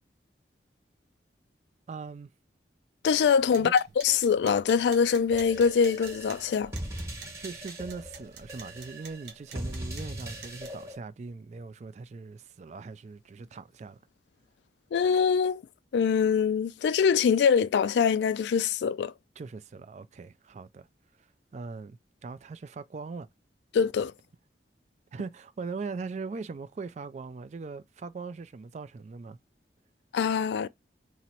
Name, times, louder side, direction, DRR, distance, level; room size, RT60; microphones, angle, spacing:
voice 1, 1.9-2.3 3.6-3.7 7.4-14.0 19.4-20.9 21.5-23.3 25.1-29.4, right 4 dB, 40° right, 0.3 m, -40 dB
voice 2, 3.0-6.7 14.9-15.6 15.9-19.1 23.7-24.1 30.1-30.7, left 6 dB, 75° left, 0.3 m, -24 dB
sound 1, 3.3-10.8, right 6 dB, 80° right, 0.9 m, -50 dB
sound 2, 5.3-11.0, equal, 15° right, 1.0 m, -40 dB
3.0 x 2.8 x 4.3 m
head